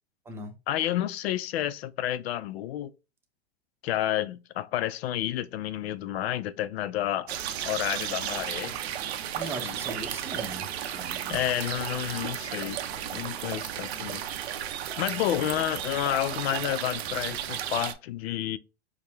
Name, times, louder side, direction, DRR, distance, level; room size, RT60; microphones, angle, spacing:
voice 1, 0.7-2.9 3.8-7.3 7.6-8.8 9.6-9.7 11.3-12.8 13.1-14.2 14.6-14.7 15.0-18.6, left 12 dB, 80° left, 0.5 m, -30 dB
sound 1, 7.3-17.9, right 10 dB, 90° right, 0.7 m, -34 dB
voice 2, 9.4-11.5 15.1-15.3, right 2 dB, 10° right, 0.6 m, -39 dB
4.7 x 2.1 x 3.3 m
supercardioid pair, 145°, 31 cm